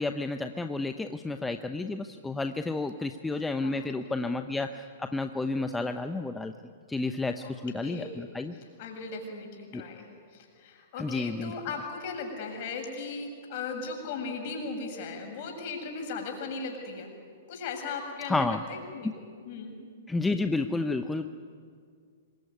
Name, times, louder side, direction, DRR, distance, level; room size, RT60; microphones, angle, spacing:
voice 1, 0.0-6.5 6.9-8.5 9.7-9.8 11.0-11.5 18.3-18.6 20.1-21.3, left 3 dB, 5° left, 8 dB, 0.9 m, -31 dB
voice 2, 3.6-4.1 7.4-8.2 8.5-17.1 17.5-19.1 19.4-19.7, left 4 dB, 45° left, 3 dB, 7.1 m, -38 dB
26.5 x 22.5 x 9.6 m, 2.1 s
figure-of-eight pair, 110°, 0 cm